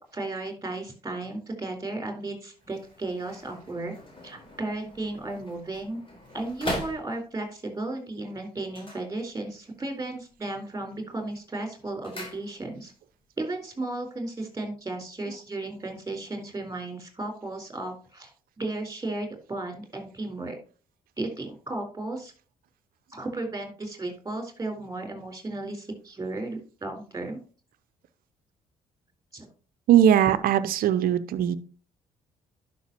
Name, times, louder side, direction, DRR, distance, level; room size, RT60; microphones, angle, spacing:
voice 1, 0.0-3.9 4.2-6.0 6.3-12.9 13.4-18.3 18.6-20.6 21.2-22.3 23.1-27.4 29.3-29.5, right 2 dB, 20° right, 4 dB, 4.0 m, -34 dB
sound 1, 2.6-7.6 8.6-9.8 10.0-10.6 10.9-13.0 13.3-13.4, equal, 35° left, 4.3 m, -40 dB
voice 2, 29.9-31.6, right 10 dB, 60° right, 13 dB, 0.7 m, -20 dB
11.0 x 6.2 x 2.9 m, 0.36 s
hypercardioid pair, 50°, 16 cm